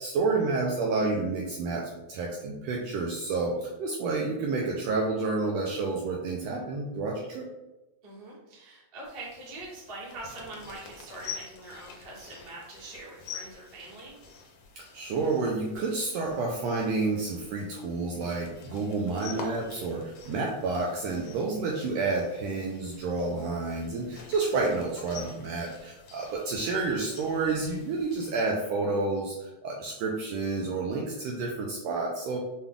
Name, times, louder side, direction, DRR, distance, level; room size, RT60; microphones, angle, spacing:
voice 1, 0.0-7.5 14.8-32.4, right 3 dB, 80° right, -1 dB, 1.5 m, -30 dB
voice 2, 8.0-14.2 21.0-21.5, right 2 dB, 45° right, -6 dB, 0.7 m, -44 dB
sound 1, 9.0-28.5, left 6 dB, 70° left, 1.7 m, -47 dB
5.5 x 2.3 x 3.6 m, 1.0 s
omnidirectional pair, 3.4 m